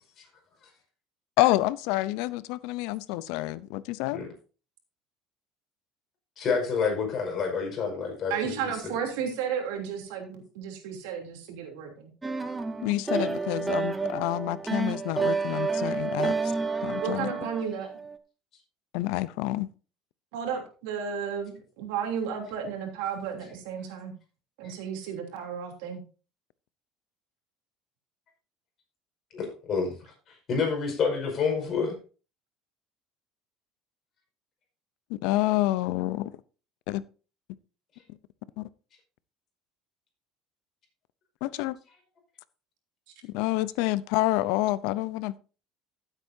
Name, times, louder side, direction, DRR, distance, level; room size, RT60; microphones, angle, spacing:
voice 1, 1.4-4.2 12.8-16.5 16.8-17.3 18.9-19.7 35.1-36.3 36.9-37.0 38.6-38.7 41.4-41.8 43.2-45.4, left 17 dB, 75° left, 0.6 m, -28 dB
voice 2, 6.4-9.0 29.3-30.0 30.5-31.9, left 5 dB, 40° left, 5.3 m, -28 dB
voice 3, 8.3-12.1 17.0-17.9 20.3-24.1 24.6-26.0, right 7 dB, 90° right, 3.1 m, -33 dB
sound 1, 12.2-18.2, right 4 dB, 10° right, 0.8 m, -30 dB
15.0 x 8.1 x 2.7 m
cardioid pair, 140°, 0 cm